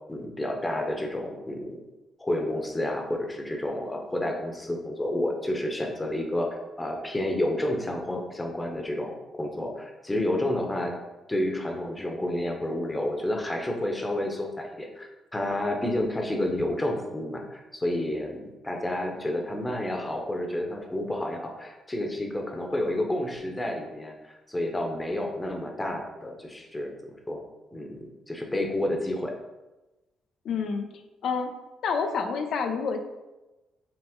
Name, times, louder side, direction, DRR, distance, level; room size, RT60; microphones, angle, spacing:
voice 1, 0.1-1.8 2.2-11.0 11.3-26.9 27.3-27.4 27.7-29.3, left 1 dB, 15° left, 2 dB, 0.8 m, -30 dB
voice 2, 30.4-30.9 31.2-31.5 31.8-33.0, left 5 dB, 70° left, 6 dB, 0.5 m, -28 dB
5.9 x 2.0 x 3.6 m, 1.1 s
cardioid pair, 90°, 0 cm